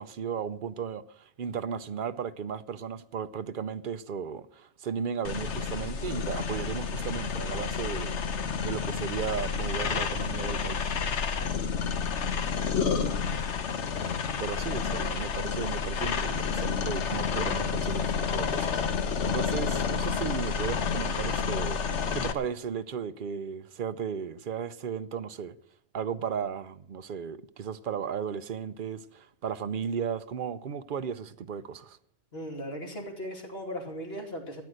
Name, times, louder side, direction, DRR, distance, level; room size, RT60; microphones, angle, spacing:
voice 1, 0.0-8.2 8.6-10.9 14.4-21.8 22.1-25.6 25.9-32.0, right 7 dB, 50° right, 0.8 m, -35 dB
sound 1, 5.2-22.3, left 6 dB, 75° left, 1.2 m, -30 dB
voice 2, 32.3-34.6, equal, 55° left, 2.9 m, -37 dB
13.5 x 9.6 x 6.4 m
omnidirectional pair, 1.2 m